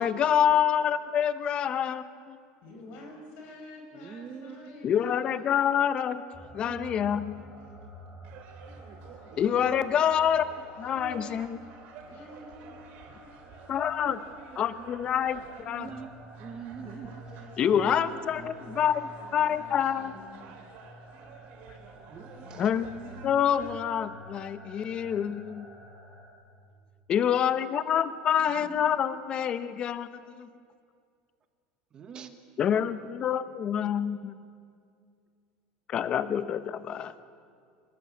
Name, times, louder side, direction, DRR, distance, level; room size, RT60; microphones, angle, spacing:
voice 1, 0.0-2.4 4.8-6.2 6.5-7.4 9.4-10.5 10.8-11.6 13.7-14.2 14.6-15.9 17.6-19.0 19.3-20.1 22.6-22.9 23.2-25.7 27.1-30.5 32.6-34.3 35.9-37.1, left 9 dB, 30° left, 13 dB, 1.0 m, -27 dB
voice 2, 2.6-5.6 7.2-7.9 10.0-10.3 12.0-12.8 13.2-13.3 16.8-18.2 18.6-18.7 19.0-20.6 22.4-23.7 28.5-29.0, left 2 dB, 50° left, 2 dB, 4.8 m, -49 dB
voice 3, 3.9-4.7 6.6-7.0 7.7-7.9 9.3-9.8 10.9-11.8 12.1-12.2 14.0-14.9 15.6-16.1 16.4-17.2 17.7-18.5 21.1-21.5 22.1-22.7 24.6-24.7 26.7-26.9 28.4-28.8 31.9-32.4 33.9-34.0, right 6 dB, 25° right, 9 dB, 1.2 m, -45 dB
sound 1, 6.3-26.3, right 1 dB, 5° left, 5.5 m, -49 dB
sound 2, 8.2-23.8, right 6 dB, 50° right, 3.3 m, -52 dB
24.5 x 21.0 x 8.5 m, 2.3 s
cardioid pair, 160°, 3 cm